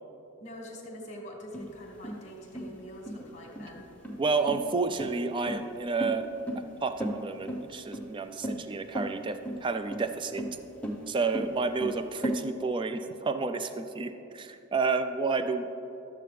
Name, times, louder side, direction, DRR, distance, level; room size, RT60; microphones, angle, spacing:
voice 1, 0.4-3.9, equal, 35° left, 0 dB, 1.5 m, -44 dB
sound 1, 1.5-12.4, right 1 dB, 5° left, 0.7 m, -36 dB
voice 2, 4.2-6.3 6.8-10.4 11.1-15.6, right 4 dB, 20° right, 9 dB, 0.3 m, -30 dB
12.0 x 7.6 x 3.3 m, 2.9 s
head